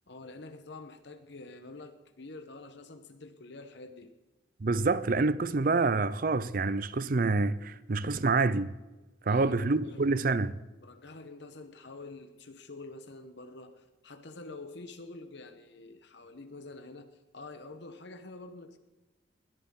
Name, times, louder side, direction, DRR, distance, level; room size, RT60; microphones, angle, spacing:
voice 1, 0.1-4.1 9.3-10.1 10.8-18.8, left 3 dB, 60° left, 1.0 m, -47 dB
voice 2, 4.6-8.7 9.3-10.6, right 3 dB, 45° right, 0.5 m, -27 dB
20.5 x 13.0 x 3.8 m
head